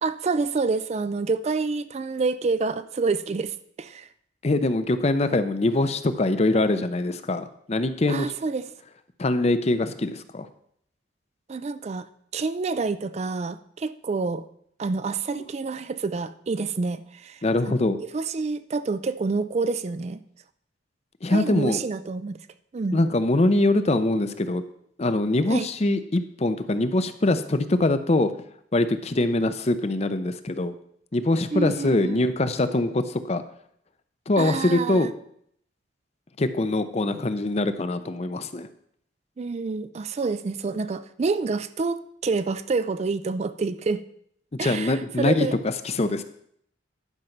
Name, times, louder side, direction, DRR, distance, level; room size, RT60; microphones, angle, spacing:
voice 1, 0.0-4.1 8.1-8.7 11.5-12.1 12.3-14.5 14.8-20.2 21.3-22.4 22.7-23.0 25.5-25.7 31.5-32.3 34.4-35.1 39.4-44.0 44.6-45.6, right 4 dB, 35° right, 13 dB, 0.3 m, -28 dB
voice 2, 4.4-8.3 9.2-10.5 17.4-18.0 21.2-21.8 22.9-24.6 25.0-28.3 28.7-30.7 31.1-33.4 34.3-35.1 36.4-38.7 44.6-46.2, left 2 dB, 35° left, 11 dB, 0.6 m, -23 dB
11.0 x 5.2 x 5.8 m, 0.69 s
head